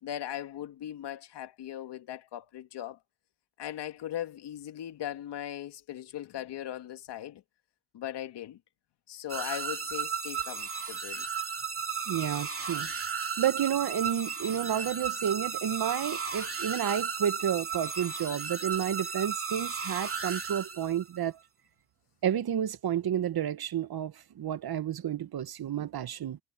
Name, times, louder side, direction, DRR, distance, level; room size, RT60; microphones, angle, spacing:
voice 1, 0.0-3.0 3.6-7.4 7.9-8.6 9.1-11.3, left 11 dB, 85° left, 2.4 m, -39 dB
sound 1, 9.3-21.2, right 6 dB, 35° right, 2.5 m, -35 dB
voice 2, 12.1-12.9 13.4-21.4 22.2-26.4, right 9 dB, 65° right, 1.3 m, -31 dB
cardioid pair, 65°, 40 cm